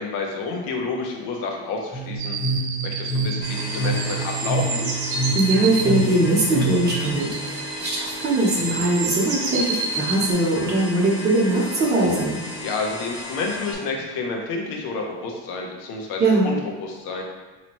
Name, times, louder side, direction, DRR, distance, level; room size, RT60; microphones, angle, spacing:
voice 1, 0.0-2.4 2.8-4.9 12.6-17.2, left 4 dB, 60° left, 1 dB, 0.9 m, -29 dB
sound 1, 1.9-7.1, right 2 dB, 5° left, 0.7 m, -27 dB
sound 2, 2.2-10.3, right 4 dB, 60° right, 0.9 m, -30 dB
sound 3, 3.4-13.7, left 1 dB, 80° left, 1.2 m, -35 dB
voice 2, 5.3-12.4 16.2-16.5, right 2 dB, 25° right, -4 dB, 0.9 m, -21 dB
4.3 x 3.0 x 2.9 m, 1.2 s
cardioid pair, 150°, 40 cm